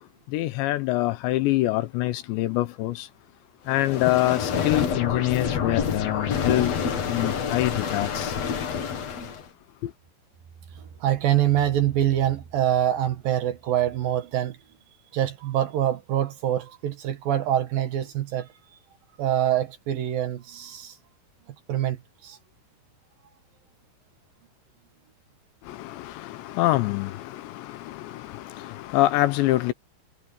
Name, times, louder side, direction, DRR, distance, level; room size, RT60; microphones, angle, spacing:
voice 1, 0.3-3.1 3.7-6.7 7.1-8.3 9.8-9.9 25.7-29.7, left 17 dB, 80° left, 2.7 m, -25 dB
sound 1, 3.7-9.5, left 7 dB, 60° left, 1.8 m, -28 dB
voice 2, 11.0-14.6 15.1-18.5 19.2-20.9 21.7-22.0 22.2-22.4, right 11 dB, 70° right, 2.3 m, -25 dB
omnidirectional pair, 5.8 m